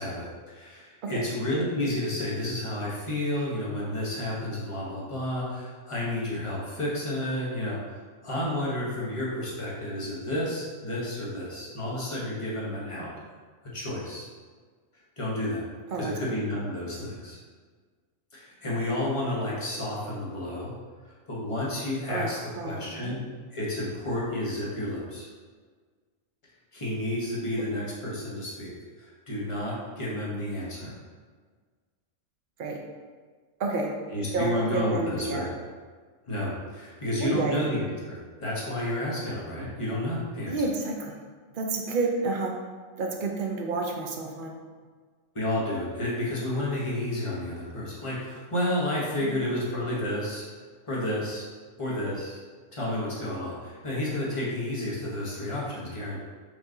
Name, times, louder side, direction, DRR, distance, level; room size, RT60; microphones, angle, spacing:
voice 1, 0.0-7.8 8.2-13.1 13.7-14.3 15.2-15.6 15.9-17.4 18.3-20.8 21.3-22.4 22.6-23.2 23.5-25.3 26.7-28.7 29.0-30.9 34.1-35.5 36.3-40.5 45.3-50.4 50.9-51.5 51.8-52.4 52.7-56.2, left 1 dB, 25° left, -6 dB, 0.9 m, -31 dB
voice 2, 22.1-23.2 32.6-32.8 33.6-33.9 34.3-35.5 37.2-37.6 40.5-41.2 41.5-42.5 43.0-44.6, right 3 dB, 55° right, 1 dB, 0.6 m, -30 dB
4.9 x 2.6 x 3.7 m, 1.6 s
omnidirectional pair, 1.4 m